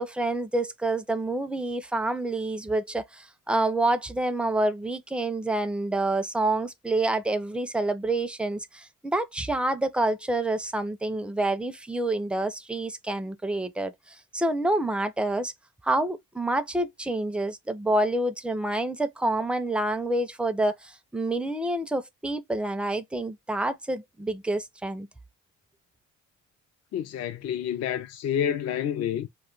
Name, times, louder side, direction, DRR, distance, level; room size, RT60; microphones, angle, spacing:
voice 1, 0.0-15.5 15.8-25.1, right 2 dB, 5° right, 0.4 m, -28 dB
voice 2, 26.9-29.3, left 9 dB, 55° left, 0.4 m, -29 dB
2.5 x 2.2 x 3.7 m
cardioid pair, 90°, 30 cm